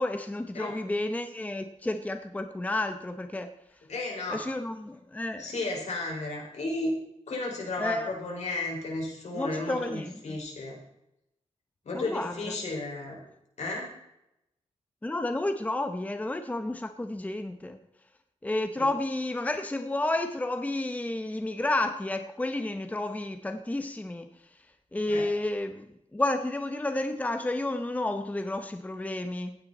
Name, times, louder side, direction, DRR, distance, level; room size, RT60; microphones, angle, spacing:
voice 1, 0.0-3.5 4.3-5.5 7.8-8.2 9.3-10.4 11.9-12.3 15.0-17.8 18.4-24.3 24.9-25.9 26.1-29.6, left 2 dB, 10° left, 8 dB, 0.8 m, -31 dB
voice 2, 3.9-4.4 5.4-7.0 7.3-10.8 11.9-13.2 13.6-13.9 18.8-18.9 25.1-25.2, left 2 dB, 70° left, -1 dB, 5.2 m, -33 dB
15.5 x 9.9 x 4.2 m, 0.83 s
wide cardioid pair, 135°, 12 cm